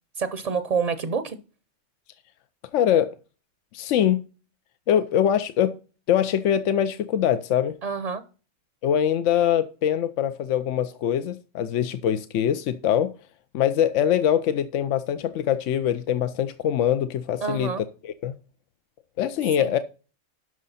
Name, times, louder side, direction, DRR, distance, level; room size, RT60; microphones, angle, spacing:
voice 1, 0.2-1.4 7.8-8.2 17.4-17.8 19.6-19.7, right 5 dB, 45° right, 0.6 m, -27 dB
voice 2, 2.7-3.1 3.7-4.2 4.9-5.7 6.1-7.8 8.8-13.1 13.5-18.3 19.2-19.8, left 10 dB, 80° left, 0.9 m, -23 dB
11.0 x 6.3 x 4.1 m
omnidirectional pair, 1.2 m